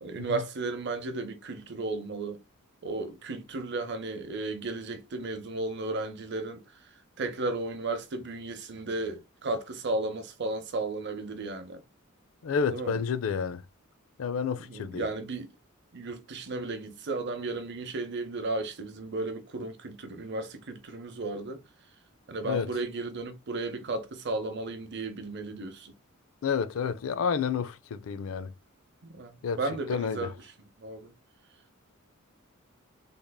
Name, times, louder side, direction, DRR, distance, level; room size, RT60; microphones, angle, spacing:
voice 1, 0.0-2.4 2.8-6.6 7.2-11.8 12.7-13.0 14.6-15.5 15.9-21.6 22.3-25.9 29.1-30.3 30.8-31.1, right 2 dB, 50° right, 0.7 m, -34 dB
voice 2, 12.4-13.6 14.2-15.1 22.4-22.7 26.4-28.5 29.4-29.6 29.9-30.3, left 6 dB, 70° left, 0.4 m, -30 dB
3.6 x 3.5 x 2.2 m
head